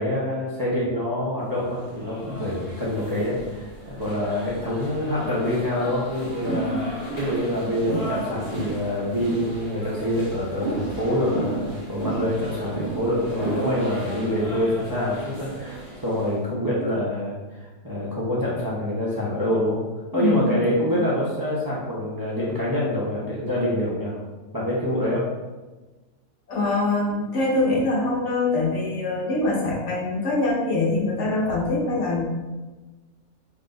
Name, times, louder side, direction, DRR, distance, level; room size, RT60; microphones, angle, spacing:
voice 1, 0.0-6.8 7.2-19.8 20.1-24.2 24.5-25.3, left 1 dB, 30° right, -7 dB, 0.3 m, -26 dB
sound 1, 1.6-16.3, right 2 dB, 25° left, 1.6 m, -34 dB
voice 2, 6.4-6.7 20.1-21.0 26.5-32.2, left 2 dB, 55° left, -4 dB, 1.1 m, -24 dB
4.0 x 2.7 x 3.9 m, 1.2 s
omnidirectional pair, 1.6 m